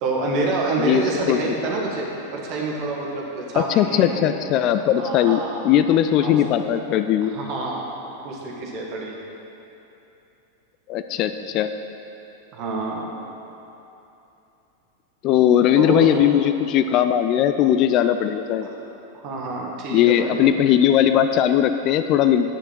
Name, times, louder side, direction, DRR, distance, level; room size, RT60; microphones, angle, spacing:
voice 1, 0.0-3.7 3.9-4.3 5.0-5.6 6.2-6.4 7.2-7.9 8.2-9.2 12.5-13.1 15.7-16.2 18.6-18.8 19.1-20.7, right 3 dB, 40° right, -2 dB, 1.7 m, -27 dB
voice 2, 0.8-1.5 3.6-7.3 10.9-11.7 15.2-18.7 19.9-22.5, left 10 dB, 40° left, 9 dB, 0.3 m, -19 dB
9.1 x 6.5 x 6.1 m, 2.9 s
figure-of-eight pair, 90°, 0 cm